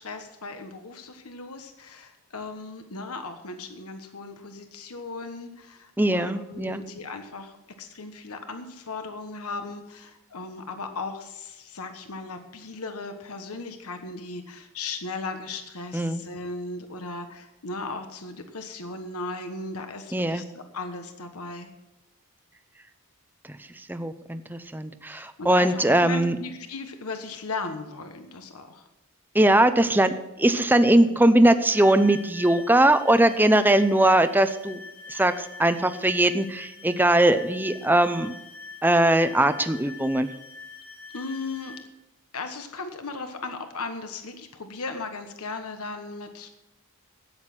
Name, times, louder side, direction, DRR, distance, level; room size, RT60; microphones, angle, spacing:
voice 1, 0.0-21.7 25.1-28.8 41.1-41.7 42.3-46.5, left 3 dB, 75° left, 6 dB, 1.3 m, -37 dB
voice 2, 6.0-6.8 15.9-16.2 20.1-20.4 23.9-26.4 29.3-34.8 35.1-38.3 38.8-40.3, right 1 dB, 10° right, 10 dB, 0.7 m, -20 dB
sound 1, 31.7-41.9, left 4 dB, 5° left, 1.8 m, -44 dB
13.5 x 9.4 x 6.0 m, 0.98 s
head